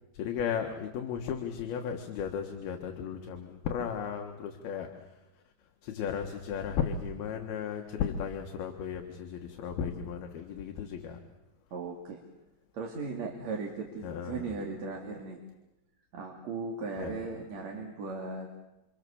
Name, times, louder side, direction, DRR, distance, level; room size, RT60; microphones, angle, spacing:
voice 1, 0.1-4.9 5.8-11.2 14.0-14.6 17.0-17.1, left 7 dB, 75° left, 4 dB, 3.4 m, -35 dB
voice 2, 11.7-12.2 12.7-15.4 16.1-18.5, right 4 dB, 45° right, 0 dB, 3.5 m, -37 dB
29.5 x 26.0 x 7.1 m, 0.98 s
omnidirectional pair, 4.5 m